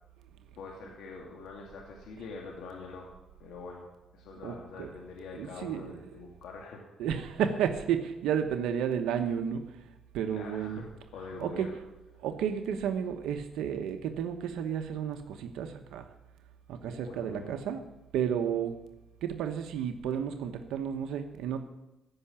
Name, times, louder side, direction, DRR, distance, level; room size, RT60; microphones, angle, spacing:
voice 1, 0.6-3.1 3.4-7.0 10.3-10.9 11.1-11.8 16.8-17.5, left 4 dB, 85° left, 0 dB, 2.1 m, -44 dB
voice 2, 4.4-4.9 5.3-5.9 7.0-9.8 10.1-10.8 11.4-11.7 12.2-16.1 16.7-17.8 18.1-18.8 19.2-21.6, right 8 dB, 85° right, 7 dB, 1.0 m, -32 dB
14.5 x 5.9 x 10.0 m, 0.98 s
cardioid pair, 90°, 0 cm